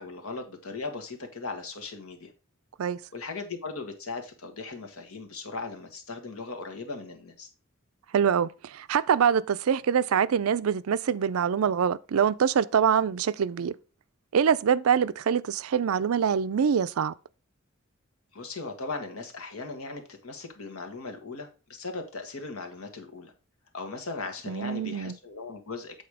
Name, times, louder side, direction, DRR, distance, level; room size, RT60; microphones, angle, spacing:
voice 1, 0.0-2.3 3.1-7.5 18.3-23.3 23.7-26.0, left 3 dB, 90° left, 1.5 m, -38 dB
voice 2, 8.1-13.7 14.3-17.1 24.5-25.1, right 7 dB, 90° right, 0.4 m, -24 dB
8.0 x 4.1 x 4.8 m
head